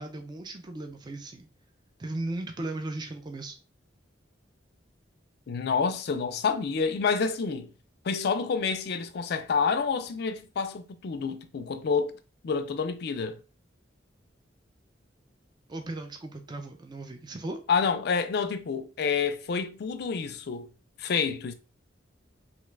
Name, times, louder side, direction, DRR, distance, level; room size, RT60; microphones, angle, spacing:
voice 1, 0.0-1.5 2.0-3.6 15.7-17.6, right 2 dB, 25° right, 0.4 m, -36 dB
voice 2, 5.5-7.7 8.0-12.2 12.4-13.4 17.7-20.7 21.0-21.5, left 5 dB, 60° left, 0.4 m, -28 dB
2.9 x 2.3 x 3.2 m
head